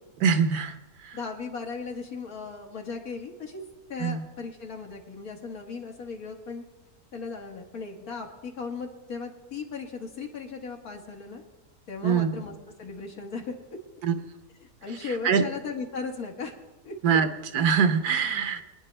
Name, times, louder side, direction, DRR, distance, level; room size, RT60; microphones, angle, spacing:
voice 1, 0.2-0.8 1.0-1.2 4.0-4.2 12.0-12.3 14.0-14.1 15.2-15.4 17.0-17.3 17.5-18.6, right 6 dB, 90° right, 9 dB, 1.4 m, -23 dB
voice 2, 1.1-3.6 3.9-6.6 7.1-11.4 11.9-13.6 14.6-16.5 16.8-17.0, left 4 dB, 75° left, 1 dB, 2.1 m, -37 dB
23.0 x 9.8 x 3.3 m, 1.1 s
omnidirectional pair, 1.6 m